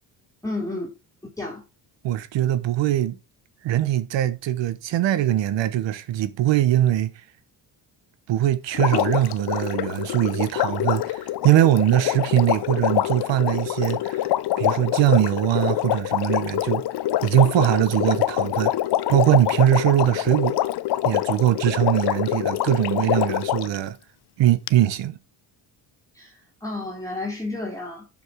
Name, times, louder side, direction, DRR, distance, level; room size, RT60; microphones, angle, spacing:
voice 1, 0.4-0.9 1.4-1.6 26.1-26.3 26.6-28.1, left 2 dB, 5° left, 3.0 m, -31 dB
voice 2, 2.0-3.2 3.6-7.1 8.3-14.3 14.6-16.8 17.2-18.7 19.1-20.6 21.0-24.0 24.4-25.2, right 13 dB, 75° right, 1.1 m, -21 dB
Water, 8.7-23.8 24.7-24.8, left 14 dB, 60° left, 0.7 m, -25 dB
7.1 x 7.0 x 5.0 m
cardioid pair, 75°, 45 cm